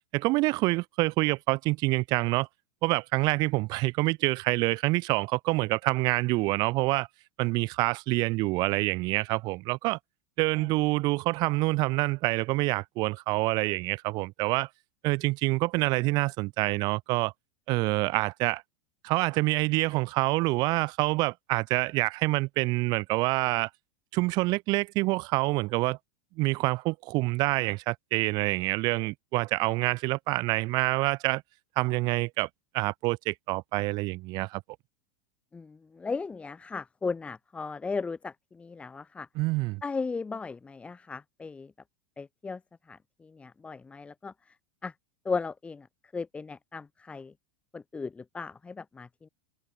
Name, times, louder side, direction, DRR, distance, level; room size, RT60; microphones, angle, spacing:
voice 1, 0.1-2.5 2.8-7.1 7.4-10.0 10.4-14.7 15.0-17.3 17.7-18.6 19.0-23.7 24.1-26.0 26.4-31.4 31.8-32.5 32.7-34.6 39.3-39.8, right 22 dB, 50° right, 6.2 m, -27 dB
voice 2, 35.5-39.3 39.8-41.7 42.2-42.6 42.9-44.3 44.8-44.9 45.2-45.9 46.1-47.3 47.7-49.3, left 4 dB, 15° left, 2.4 m, -36 dB
supercardioid pair, 135°, 9 cm